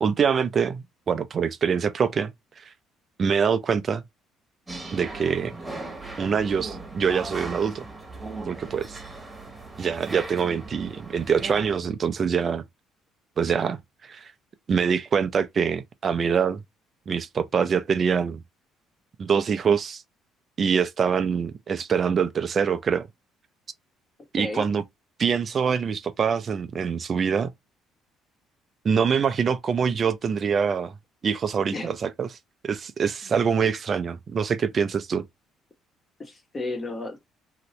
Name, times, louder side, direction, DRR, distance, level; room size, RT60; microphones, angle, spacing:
voice 1, 0.0-2.3 2.6-2.7 3.2-4.0 4.9-5.5 6.2-7.8 8.5-9.0 9.8-12.6 13.4-14.3 14.7-16.6 17.1-18.4 19.2-20.0 20.6-23.1 24.3-24.8 25.2-27.5 28.8-30.9 31.2-32.3 32.6-35.2, right 6 dB, 45° right, 0.4 m, -24 dB
sound 1, 4.7-11.7, right 2 dB, 15° right, 1.2 m, -38 dB
voice 2, 24.4-24.7 31.7-31.9 36.2-37.2, left 2 dB, 30° left, 1.3 m, -32 dB
2.9 x 2.6 x 3.0 m
supercardioid pair, 85°, 0 cm